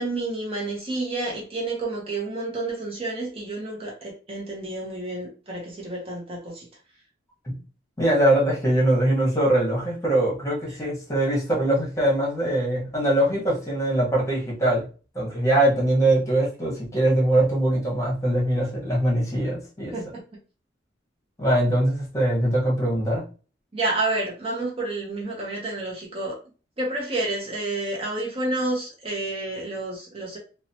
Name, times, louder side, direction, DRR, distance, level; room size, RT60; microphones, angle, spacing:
voice 1, 0.0-6.7 19.9-20.2 23.7-26.4 26.8-30.4, right 2 dB, 30° right, 0.6 m, -29 dB
voice 2, 8.0-14.8 15.1-19.9 21.4-23.2, right 1 dB, 15° left, 1.0 m, -22 dB
2.8 x 2.0 x 2.6 m
head